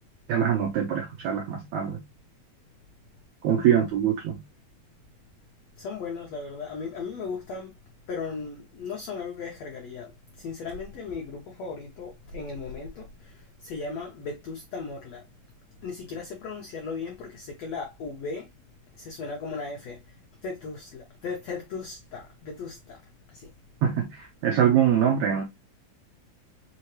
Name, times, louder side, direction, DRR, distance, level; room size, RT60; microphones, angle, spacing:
voice 1, 0.3-2.0 3.4-4.4 23.8-25.4, right 9 dB, 80° right, 1.6 m, -24 dB
voice 2, 5.8-7.7 8.1-15.2 15.8-18.5 19.0-20.2 20.4-23.0 23.3-23.5, left 4 dB, 85° left, 1.4 m, -37 dB
5.4 x 2.9 x 3.1 m
omnidirectional pair, 4.3 m